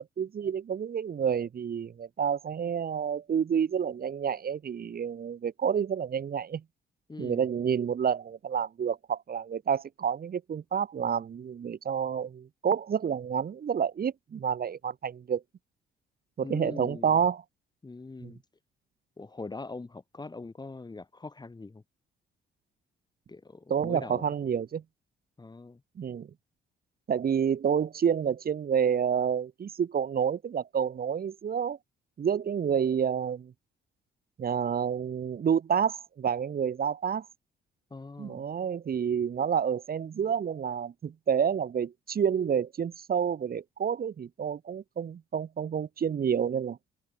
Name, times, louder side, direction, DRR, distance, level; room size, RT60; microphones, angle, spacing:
voice 1, 0.0-6.6 7.2-15.4 16.4-17.4 18.2-18.3 23.7-24.8 26.0-26.3 27.1-31.8 32.2-33.5 34.4-37.3 38.2-46.8, right 7 dB, 50° right, 1.9 m, -29 dB
voice 2, 7.1-7.5 16.4-17.2 17.8-18.4 19.2-21.8 23.3-24.3 25.4-25.8 37.9-38.4, left 3 dB, 20° left, 2.1 m, -42 dB
cardioid pair, 90°, 20 cm